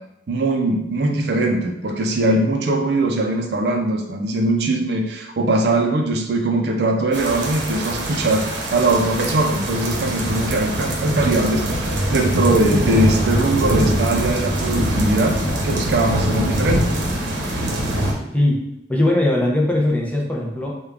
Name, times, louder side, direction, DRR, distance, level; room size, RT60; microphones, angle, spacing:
voice 1, 0.3-15.4 15.6-16.9, right 2 dB, 65° right, 3 dB, 0.4 m, -21 dB
sound 1, 7.1-18.1, right 1 dB, 90° right, 0.8 m, -22 dB
voice 2, 18.9-20.7, left 1 dB, 10° left, -2 dB, 0.5 m, -19 dB
3.4 x 2.3 x 3.4 m, 0.86 s
head